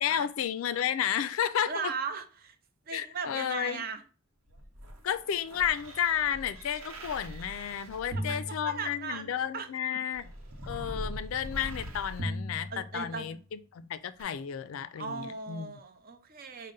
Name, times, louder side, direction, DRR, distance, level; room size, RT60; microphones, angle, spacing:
voice 1, 0.0-1.9 2.9-3.9 5.0-10.3 10.7-15.7, left 9 dB, 70° left, 0.3 m, -32 dB
voice 2, 1.7-2.6 2.9-4.0 8.1-9.7 12.7-13.4 15.0-16.7, right 5 dB, 45° right, 0.5 m, -38 dB
sound 1, 4.5-9.4 10.1-13.4 14.2-14.3, equal, 85° right, 0.8 m, -40 dB
5.2 x 2.1 x 3.7 m
head